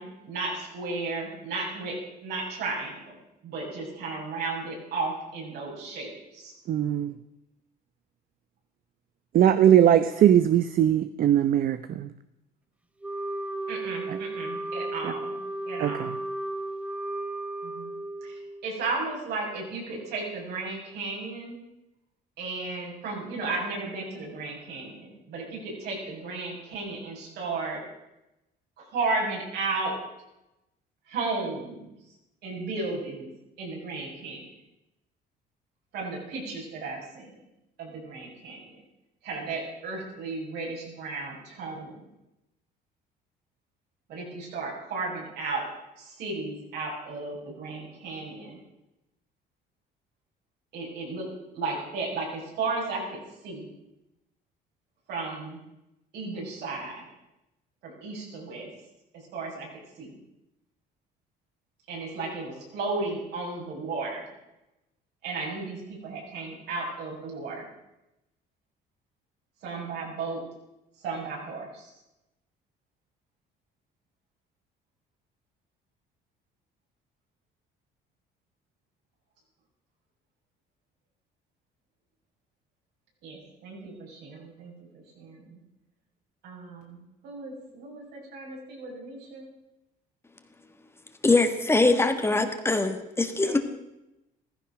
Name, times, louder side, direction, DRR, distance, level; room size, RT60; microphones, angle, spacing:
voice 1, 0.0-3.2 3.4-6.5 13.7-15.4 15.7-16.1 17.6-17.9 18.2-21.6 22.4-27.8 28.8-30.0 31.1-31.9 32.4-33.3 33.6-34.5 35.9-37.4 37.8-38.8 39.2-42.0 44.1-45.7 46.0-48.6 50.7-53.7 55.1-55.6 56.1-57.1 57.8-58.7 59.1-59.7 60.0-60.1 61.9-64.3 65.2-67.7 69.6-70.4 71.0-71.9 83.2-85.6 86.4-89.4 93.4-93.6, right 3 dB, 75° right, -2 dB, 7.4 m, -34 dB
voice 2, 6.7-7.1 9.3-12.1 14.1-14.2 15.0-15.1 15.8-16.1, right 10 dB, 60° right, 12 dB, 0.8 m, -20 dB
Wind instrument woodwind instrument, 13.0-18.7, right 2 dB, 5° right, 1.1 m, -34 dB
voice 3, 91.2-93.6, left 2 dB, 15° left, 7 dB, 1.7 m, -23 dB
15.0 x 15.0 x 6.4 m, 0.90 s
cardioid pair, 110°, 17 cm